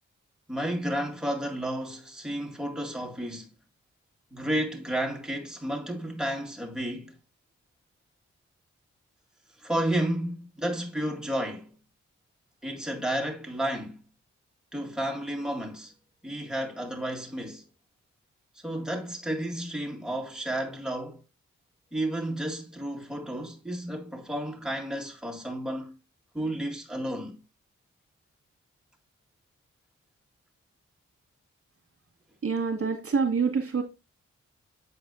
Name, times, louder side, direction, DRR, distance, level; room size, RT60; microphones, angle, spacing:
voice 1, 0.5-3.5 4.3-7.2 9.6-11.7 12.6-14.0 14.7-15.9 16.2-17.6 18.6-21.2 21.9-25.9 26.3-27.4, right 1 dB, ahead, 1.9 m, -32 dB
voice 2, 32.4-33.8, right 5 dB, 50° right, 1.8 m, -26 dB
8.1 x 4.8 x 2.5 m
cardioid pair, 45°, 30 cm